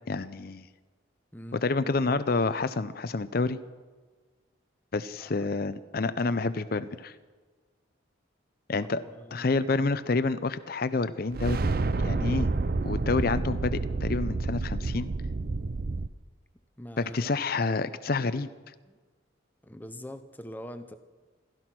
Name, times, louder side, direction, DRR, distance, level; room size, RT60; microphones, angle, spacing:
voice 1, 0.1-0.7 1.5-3.6 4.9-7.1 8.7-9.0 9.3-11.6 12.0-12.5 12.8-15.1 17.0-18.5, left 3 dB, 50° left, 13 dB, 0.5 m, -28 dB
voice 2, 1.3-1.6 5.2-5.5 8.8-9.5 16.8-17.3 18.9-19.0 19.6-21.0, equal, 10° left, 9 dB, 0.8 m, -43 dB
sound 1, 11.3-16.1, right 3 dB, 45° right, 0.5 m, -29 dB
16.0 x 13.5 x 6.0 m, 1.4 s
head